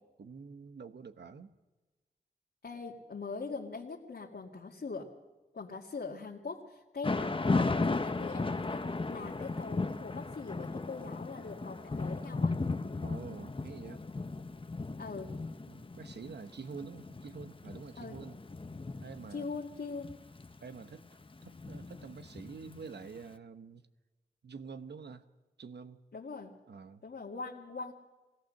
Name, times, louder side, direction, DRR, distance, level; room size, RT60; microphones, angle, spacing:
voice 1, 0.2-1.5 13.0-14.0 15.7-18.4 19.0-19.5 20.6-21.1 21.4-23.9 24.4-25.3 25.6-26.0 26.7-27.0, right 5 dB, 85° right, 10 dB, 1.0 m, -47 dB
voice 2, 2.6-5.1 5.5-8.8 9.1-12.6 15.0-15.3 18.0-18.2 19.3-20.1 26.1-26.5 27.0-27.9, left 4 dB, 75° left, -4 dB, 2.0 m, -42 dB
Thunder / Rain, 7.0-23.1, left 3 dB, 30° left, 0.9 m, -36 dB
23.0 x 17.5 x 6.5 m, 1.2 s
wide cardioid pair, 85°, 17 cm